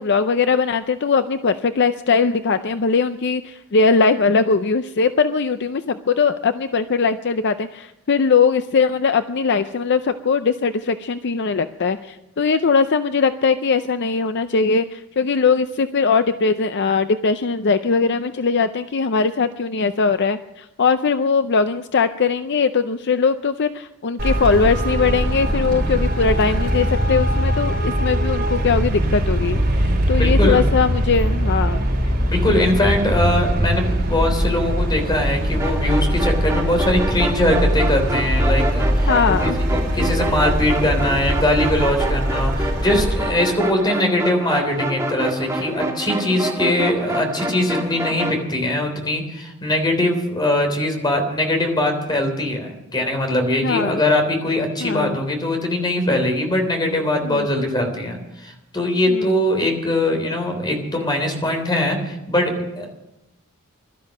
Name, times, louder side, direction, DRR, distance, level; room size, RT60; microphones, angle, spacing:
voice 1, 0.0-31.8 39.1-39.6 46.3-46.5 53.6-54.0 54.8-55.2 57.2-57.5 59.1-59.3, left 5 dB, 55° left, 10 dB, 0.5 m, -20 dB
Traffic noise roadway noise, 24.2-43.2, equal, 45° right, 5.1 m, -21 dB
voice 2, 30.2-30.7 32.3-62.9, left 1 dB, 20° left, 4 dB, 3.4 m, -21 dB
sound 1, 35.6-48.4, right 1 dB, 15° right, 2.7 m, -27 dB
16.5 x 12.5 x 6.6 m, 0.91 s
head